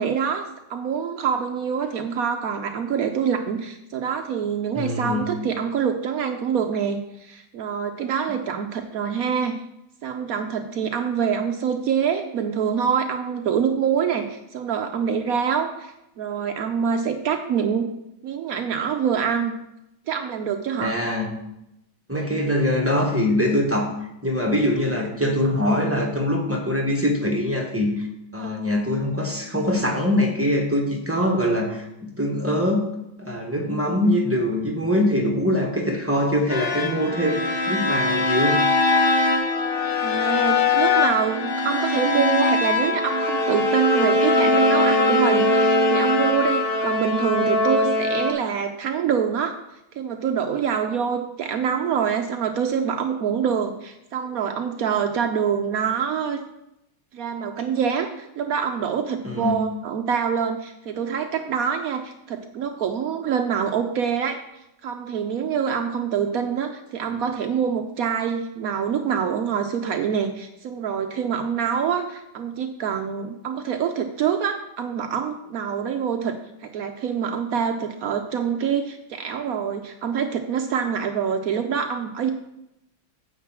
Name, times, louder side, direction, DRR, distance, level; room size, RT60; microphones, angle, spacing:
voice 1, 0.0-9.6 10.0-17.9 18.2-19.5 20.1-21.0 28.4-28.6 40.0-49.5 49.9-56.4 57.1-64.4 64.8-82.3, right 7 dB, 85° right, 5 dB, 0.7 m, -25 dB
voice 2, 4.7-5.3 20.8-21.4 22.1-23.9 24.2-28.1 28.3-32.9 33.2-38.6 59.2-59.7, left 1 dB, 10° right, 0 dB, 0.7 m, -23 dB
sound 1, 36.5-48.3, left 2 dB, 85° left, 0.5 m, -21 dB
9.4 x 3.9 x 7.3 m, 0.85 s
omnidirectional pair, 2.3 m